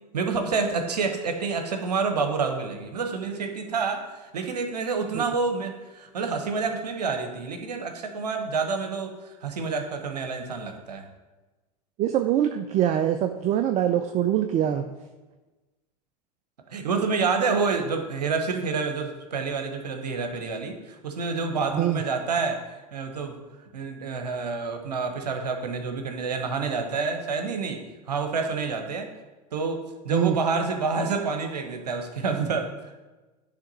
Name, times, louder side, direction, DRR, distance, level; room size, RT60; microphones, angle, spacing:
voice 1, 0.1-11.1 16.7-22.6 22.9-23.4 23.7-29.1 29.5-32.9, right 4 dB, 80° right, 5 dB, 0.9 m, -28 dB
voice 2, 12.0-14.9 21.7-22.0 30.1-30.4, right 10 dB, 35° right, 8 dB, 0.4 m, -24 dB
9.7 x 3.4 x 4.1 m, 1.2 s
hypercardioid pair, 85°, 20 cm